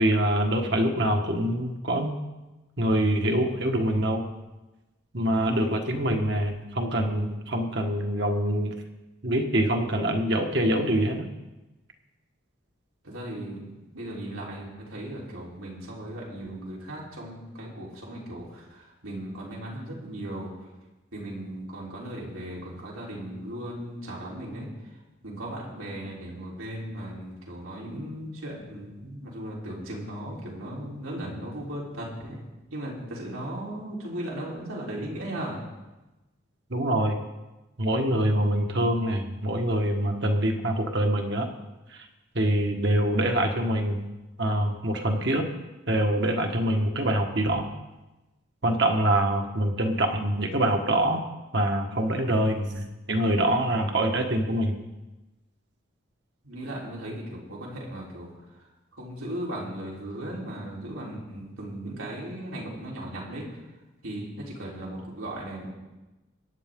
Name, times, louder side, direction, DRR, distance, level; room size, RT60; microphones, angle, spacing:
voice 1, 0.0-2.1 2.8-4.3 5.1-8.7 9.2-11.3 36.7-37.2 37.8-41.5 41.9-42.0 42.3-44.0 44.4-45.4 45.9-47.7 48.6-51.2 51.5-54.8, right 1 dB, 55° right, 3 dB, 1.6 m, -25 dB
voice 2, 13.0-13.6 13.9-20.5 21.1-24.7 25.2-32.4 32.7-35.6 56.4-58.3 58.9-63.4 64.0-65.7, right 1 dB, 90° right, -4 dB, 3.8 m, -37 dB
23.0 x 9.7 x 3.8 m, 1.1 s
head